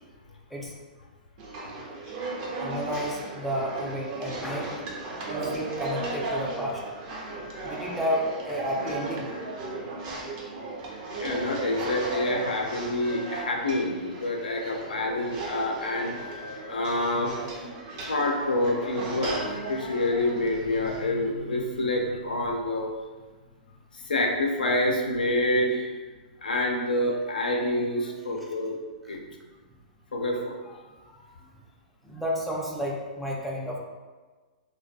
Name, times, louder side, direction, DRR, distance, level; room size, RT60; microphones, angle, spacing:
sound 1, 1.4-21.0, right 2 dB, 50° right, 0.6 m, -36 dB
voice 1, 2.6-6.8 7.6-9.3 10.1-10.2 31.2-31.3 32.0-33.8, equal, ahead, -3 dB, 0.4 m, -32 dB
voice 2, 7.3-7.6 10.8-10.9 11.2-22.9 23.9-25.9 26.4-28.8 29.1-29.2 30.1-30.9, left 1 dB, 90° left, 0 dB, 0.4 m, -28 dB
2.2 x 2.2 x 2.6 m, 1.3 s
hypercardioid pair, 120°, 5 cm